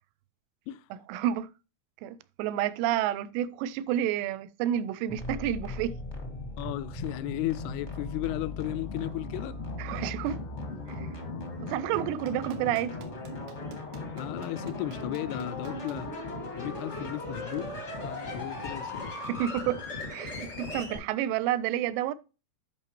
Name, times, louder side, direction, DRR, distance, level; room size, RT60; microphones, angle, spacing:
voice 1, 1.1-1.5 2.0-6.0 9.8-10.4 10.9-11.1 11.6-12.9 18.5-18.6 19.3-19.8 20.1-22.1, right 11 dB, 85° right, 2.8 m, -30 dB
sound 1, 5.1-21.0, left 2 dB, 45° left, 0.8 m, -38 dB
voice 2, 6.6-9.6 14.2-16.1 16.6-17.7 18.0-19.1, left 14 dB, 85° left, 2.3 m, -35 dB
Clapping, 12.3-16.0 17.5-17.6, right 8 dB, 70° right, 2.4 m, -51 dB
11.0 x 5.6 x 3.0 m
omnidirectional pair, 4.9 m